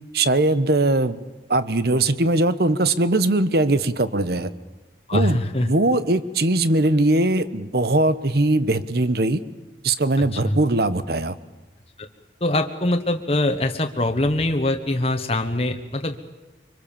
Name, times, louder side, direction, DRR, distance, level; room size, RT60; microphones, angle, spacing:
voice 1, 0.1-1.2 1.5-4.5 5.1-9.4 9.8-11.4, right 2 dB, 55° right, 14 dB, 1.1 m, -20 dB
voice 2, 5.1-5.7 10.2-10.6 12.0-12.1 12.4-16.2, left 1 dB, 30° left, 5 dB, 1.3 m, -23 dB
25.0 x 24.5 x 7.2 m, 1.1 s
head